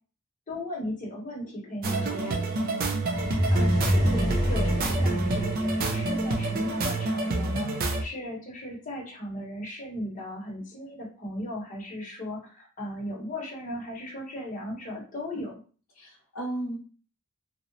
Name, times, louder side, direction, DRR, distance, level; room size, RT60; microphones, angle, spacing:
voice 1, 0.5-2.1 3.5-7.7 8.0-15.6, left 1 dB, 35° left, -3 dB, 0.8 m, -36 dB
sound 1, 1.8-8.0, right 2 dB, 45° right, 0.4 m, -28 dB
voice 2, 2.0-2.4 16.0-16.8, right 1 dB, 70° left, -3 dB, 0.6 m, -35 dB
sound 2, 3.1-7.0, equal, 20° left, 0.4 m, -27 dB
2.7 x 2.0 x 2.5 m, 0.38 s
head